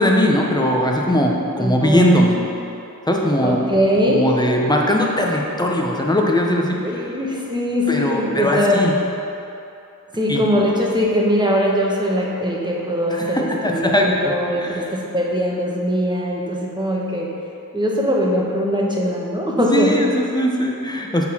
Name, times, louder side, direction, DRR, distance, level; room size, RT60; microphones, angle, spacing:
voice 1, 0.0-2.4 3.1-3.6 4.1-7.0 7.9-8.9 10.3-10.5 13.1-14.3 14.6-14.9 19.7-21.3, equal, 10° left, -1 dB, 0.9 m, -19 dB
voice 2, 1.6-2.2 3.4-4.3 6.8-8.9 10.1-17.3 17.7-20.0, equal, 10° right, -3 dB, 1.2 m, -21 dB
7.2 x 4.0 x 5.6 m, 2.8 s
wide cardioid pair, 45°, 36 cm